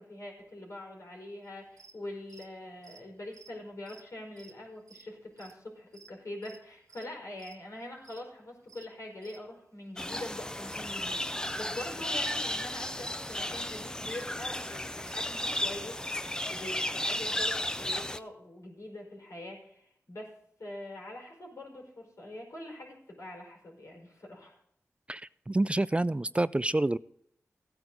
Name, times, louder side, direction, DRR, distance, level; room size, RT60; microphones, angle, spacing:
voice 1, 0.0-16.0 16.5-24.6, left 1 dB, 70° left, -1 dB, 5.0 m, -44 dB
sound 1, 1.7-1.9 2.3-2.5 2.8-4.6 4.9-5.1 5.4-5.7 5.9-6.6 6.9-7.1 7.4-8.2 8.7-9.4 9.8-11.9 12.2-12.5 12.7-18.2, right 5 dB, 85° right, 0.9 m, -55 dB
sound 2, 10.0-18.2, left 1 dB, 15° left, 0.6 m, -34 dB
voice 2, 25.5-27.0, right 2 dB, 20° right, 17 dB, 0.3 m, -27 dB
15.5 x 9.5 x 3.9 m, 0.68 s
cardioid pair, 55°, 5 cm